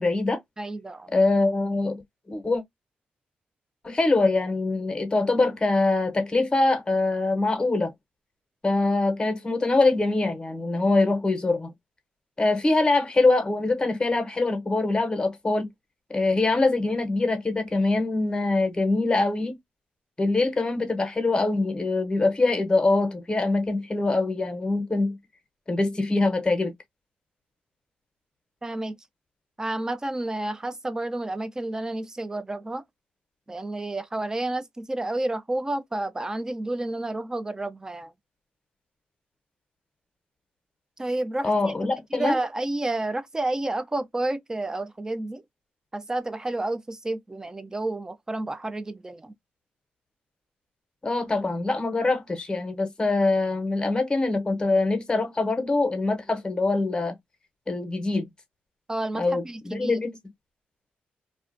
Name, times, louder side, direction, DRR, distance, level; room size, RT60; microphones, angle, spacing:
voice 1, 0.0-0.4 1.1-2.0 2.3-2.6 3.8-7.9 8.6-11.7 12.4-15.7 16.1-19.6 20.2-25.2 25.7-26.7 41.4-42.4 51.0-57.2 57.7-58.3 59.2-60.1, left 3 dB, 25° left, 0.8 m, -24 dB
voice 2, 0.6-1.1 28.6-29.0 29.6-32.8 33.5-38.1 41.0-41.7 42.1-45.4 45.9-49.3 58.9-59.9, right 2 dB, 15° right, 0.4 m, -30 dB
2.4 x 2.1 x 2.4 m
cardioid pair, 80°, 4 cm